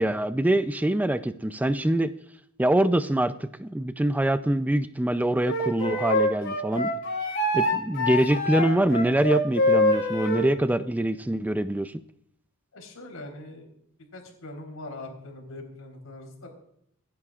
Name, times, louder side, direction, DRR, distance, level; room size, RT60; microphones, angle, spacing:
voice 1, 0.0-2.1 2.6-6.9 7.5-12.0, right 1 dB, 10° right, 12 dB, 0.4 m, -24 dB
Wind instrument woodwind instrument, 5.4-10.5, left 1 dB, 60° left, 4.9 m, -25 dB
voice 2, 12.7-13.7 14.1-16.5, left 2 dB, 90° left, 2 dB, 3.9 m, -41 dB
26.0 x 10.5 x 2.4 m, 0.74 s
head